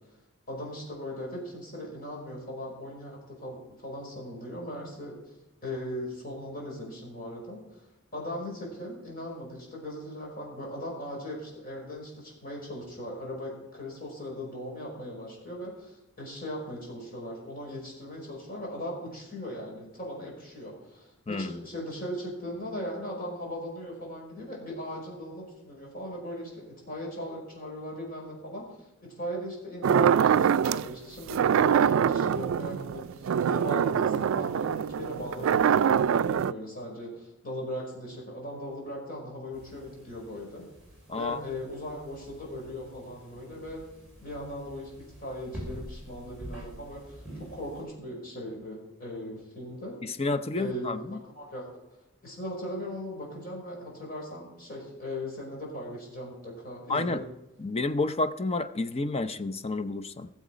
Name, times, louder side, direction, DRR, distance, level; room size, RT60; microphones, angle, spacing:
voice 1, 0.5-5.2 5.6-28.7 29.0-40.7 41.1-43.8 44.2-50.0 50.6-51.7 52.2-57.3, equal, 45° left, -2 dB, 5.2 m, -38 dB
sound 1, 29.8-30.9 31.3-36.5, right 8 dB, 70° right, 0.3 m, -24 dB
sound 2, 39.5-47.8, right 1 dB, 5° right, 5.7 m, -47 dB
voice 2, 41.1-41.4 50.0-51.2 56.9-57.2 57.6-60.3, left 2 dB, 30° left, 12 dB, 0.6 m, -30 dB
19.0 x 7.3 x 5.1 m, 0.97 s
head